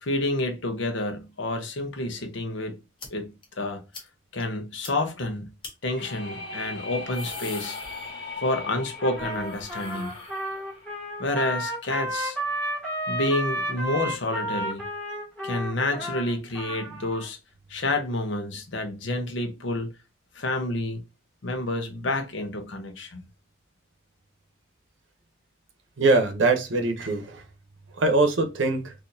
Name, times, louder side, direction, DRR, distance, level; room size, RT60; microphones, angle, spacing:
voice 1, 0.0-2.8 3.1-3.8 4.3-5.5 5.8-7.8 8.4-10.1 11.2-12.4 13.1-14.8 15.4-17.4 17.7-19.9 20.3-21.0 21.4-23.2, left 2 dB, 75° left, 0.8 m, -29 dB
sound 1, 3.0-3.1 3.4-3.5 3.9-4.1 4.4-4.5 4.8-4.9 5.6-5.7 6.9-8.5 8.8-11.0, left 3 dB, 25° left, 0.8 m, -43 dB
sound 2, 5.9-11.6, left 3 dB, 50° left, 1.5 m, -39 dB
Trumpet, 9.0-17.3, right 1 dB, 5° left, 1.4 m, -32 dB
voice 2, 26.0-27.4 28.0-28.9, right 3 dB, 75° right, 0.7 m, -22 dB
4.1 x 2.6 x 2.6 m
head